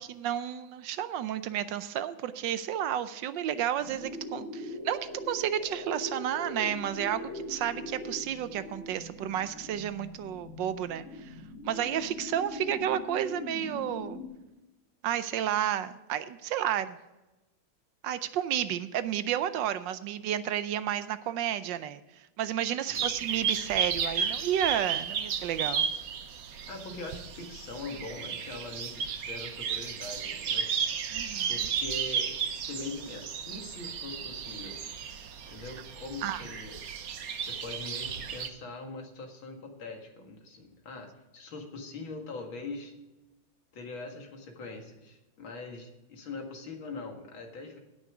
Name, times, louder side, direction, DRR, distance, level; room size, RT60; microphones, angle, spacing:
voice 1, 0.0-11.4 11.6-14.2 15.0-17.0 18.0-22.0 22.4-25.9 31.1-31.7 36.2-36.4, right 10 dB, 75° right, 13 dB, 1.2 m, -31 dB
sound 1, 3.8-14.3, left 2 dB, 30° left, 2.9 m, -41 dB
sound 2, 22.9-38.5, right 7 dB, 55° right, 1.1 m, -33 dB
voice 2, 26.7-30.7 31.5-32.3 32.6-34.8 35.5-36.8 37.4-42.9 43.7-47.8, left 3 dB, 85° left, 2 dB, 2.6 m, -42 dB
16.5 x 6.4 x 4.9 m, 1.0 s
omnidirectional pair, 2.1 m